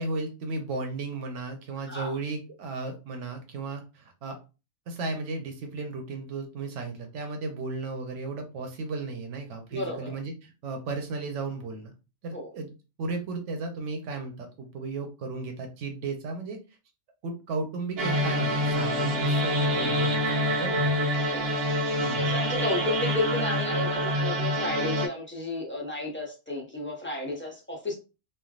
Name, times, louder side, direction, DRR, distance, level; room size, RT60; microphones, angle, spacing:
voice 1, 0.0-4.3 4.9-11.9 12.2-12.7 13.0-16.6 17.2-21.0 22.0-22.4, right 3 dB, 90° right, 1.0 m, -35 dB
voice 2, 9.7-10.1 12.3-12.5 20.6-20.7 21.3-21.5 22.2-27.9, left 1 dB, 10° left, 0.6 m, -33 dB
sound 1, 18.0-25.1, equal, 65° right, 0.8 m, -26 dB
3.2 x 2.3 x 2.3 m
omnidirectional pair, 1.2 m